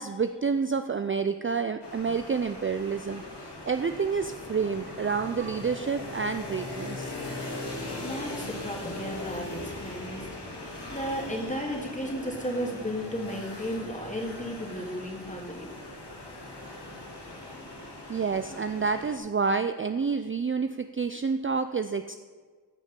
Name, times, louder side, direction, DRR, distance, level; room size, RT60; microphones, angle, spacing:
voice 1, 0.0-7.1 17.8-22.2, right 5 dB, 30° right, 9 dB, 0.4 m, -29 dB
sound 1, 1.8-19.2, left 2 dB, 80° left, 2.1 m, -40 dB
voice 2, 8.0-10.3 10.9-15.7, equal, 20° left, 0 dB, 2.2 m, -34 dB
15.5 x 5.2 x 5.3 m, 1.5 s
wide cardioid pair, 75°, 40 cm